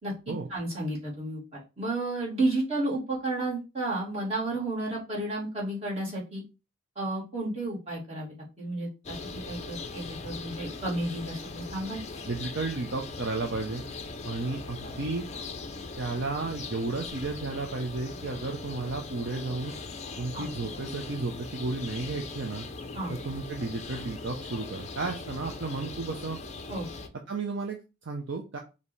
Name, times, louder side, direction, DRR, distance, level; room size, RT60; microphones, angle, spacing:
voice 1, 0.5-6.4 7.0-9.2 9.5-12.0 20.3-20.5 22.9-23.1 26.7-26.9, right 2 dB, 30° right, -7 dB, 2.2 m, -32 dB
sound 1, 9.0-27.1, left 3 dB, 30° left, 0.5 m, -40 dB
voice 2, 12.3-13.8 14.2-15.3 16.0-19.7 20.2-22.7 23.1-26.4 27.3-28.6, right 3 dB, 50° right, 2 dB, 0.6 m, -33 dB
5.2 x 2.8 x 3.2 m, 0.29 s
head